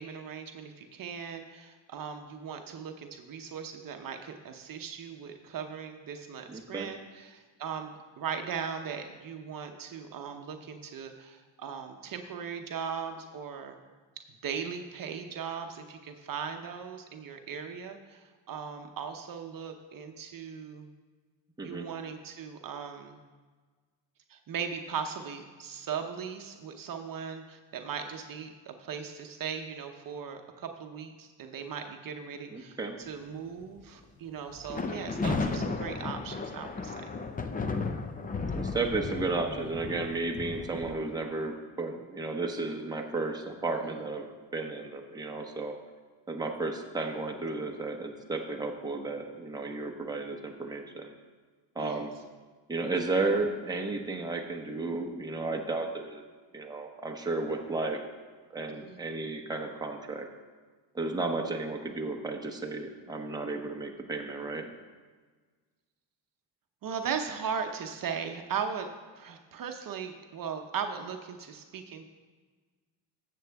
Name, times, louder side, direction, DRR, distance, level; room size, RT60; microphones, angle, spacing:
voice 1, 0.0-13.8 14.4-20.9 21.6-23.2 24.3-37.1 43.8-43.9 51.8-52.0 58.9-59.0 66.8-68.9 69.2-72.1, right 7 dB, 50° right, 5 dB, 0.8 m, -38 dB
voice 2, 6.5-6.9 21.6-21.9 32.5-33.0 38.6-45.7 46.3-51.1 51.7-52.1 52.7-56.2 56.5-58.0 58.5-60.3 60.9-64.7, right 3 dB, 10° right, 1 dB, 1.0 m, -33 dB
sound 1, 34.6-40.9, left 3 dB, 20° left, 0.5 m, -34 dB
13.5 x 7.7 x 3.5 m, 1.4 s
cardioid pair, 115°, 42 cm